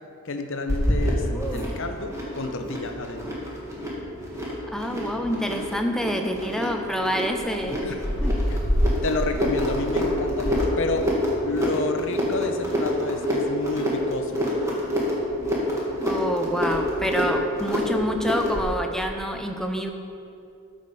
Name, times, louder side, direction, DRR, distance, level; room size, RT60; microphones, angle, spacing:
voice 1, 0.2-3.4 7.7-8.0 8.5-8.6 9.0-11.1 11.4-14.5, left 2 dB, 60° left, 6 dB, 0.8 m, -30 dB
Reverso de algo, 0.7-18.7, equal, 15° right, 1.8 m, -27 dB
voice 2, 1.3-1.7 4.7-7.8 8.2-8.3 16.0-19.9, equal, ahead, 4 dB, 0.6 m, -27 dB
13.5 x 5.1 x 5.4 m, 2.6 s
head